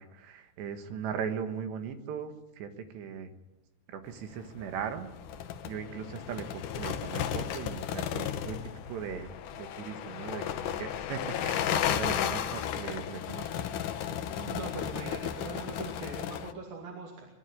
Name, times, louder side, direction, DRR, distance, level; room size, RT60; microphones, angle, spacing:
voice 1, 0.0-3.3 3.9-5.1 5.6-8.6 8.9-13.9, right 7 dB, 85° right, 8 dB, 3.7 m, -39 dB
sound 1, 4.5-16.5, left 10 dB, 75° left, 1.9 m, -34 dB
voice 2, 14.4-17.3, right 3 dB, 60° right, -1 dB, 4.0 m, -41 dB
24.0 x 11.5 x 9.8 m, 0.96 s
omnidirectional pair, 4.9 m